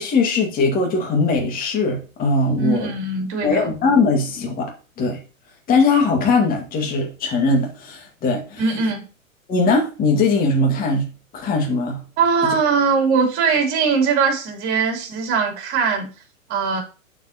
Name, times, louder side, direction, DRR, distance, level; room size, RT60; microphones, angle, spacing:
voice 1, 0.0-2.9 3.4-4.7 5.0-5.2 5.7-8.8 9.5-11.1 11.3-12.0, left 3 dB, 20° left, 2.0 m, -20 dB
voice 2, 2.6-3.7 8.6-9.0 12.2-16.1 16.5-16.8, right 5 dB, 30° right, 3.4 m, -20 dB
11.0 x 4.9 x 2.9 m
figure-of-eight pair, 115°, 42 cm